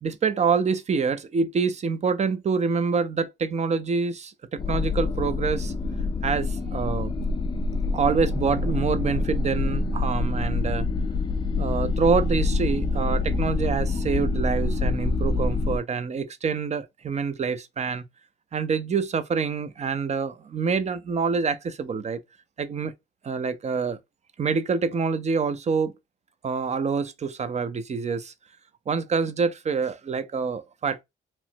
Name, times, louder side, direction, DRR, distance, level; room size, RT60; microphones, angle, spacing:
voice 1, 0.0-5.7 6.2-7.1 7.9-10.9 11.6-18.0 18.5-22.2 22.6-22.9 23.2-24.0 24.4-25.9 26.4-28.3 28.9-31.0, right 5 dB, 35° right, 0.5 m, -26 dB
sound 1, 4.6-15.8, left 3 dB, 25° left, 0.4 m, -26 dB
3.0 x 2.1 x 2.7 m
cardioid pair, 90°, 20 cm